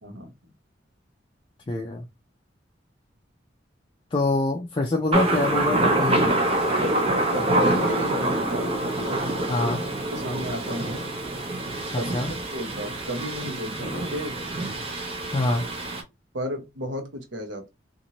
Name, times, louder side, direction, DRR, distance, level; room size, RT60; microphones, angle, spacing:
voice 1, 0.0-0.3 7.3-8.8 9.6-9.7 10.1-11.1 11.9-12.2 12.5-14.4 16.3-17.7, equal, 80° right, 1.0 m, -33 dB
voice 2, 1.7-2.0 4.1-6.4 9.5-9.8 11.9-12.3 15.3-15.7, left 2 dB, 25° left, 0.4 m, -25 dB
Thunder, 5.1-16.0, right 1 dB, 30° right, 0.7 m, -26 dB
2.8 x 2.5 x 2.8 m
head